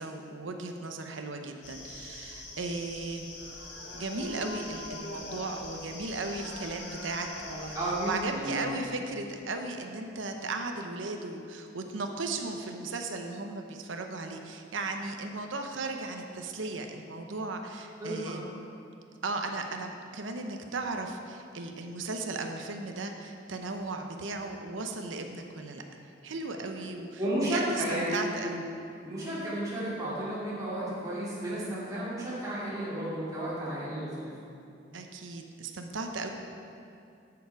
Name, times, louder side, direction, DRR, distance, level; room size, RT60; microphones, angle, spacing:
voice 1, 0.0-3.3 3.9-7.8 8.1-18.5 19.2-25.8 26.2-27.2 27.5-28.7 34.9-36.3, right 3 dB, 85° right, 4 dB, 0.8 m, -36 dB
sound 1, 1.6-8.2, left 2 dB, 70° left, 1.7 m, -42 dB
voice 2, 7.7-8.7 18.0-18.3 27.2-28.6 29.0-34.3, right 1 dB, 20° right, -10 dB, 2.5 m, -32 dB
13.0 x 7.1 x 4.7 m, 2.5 s
head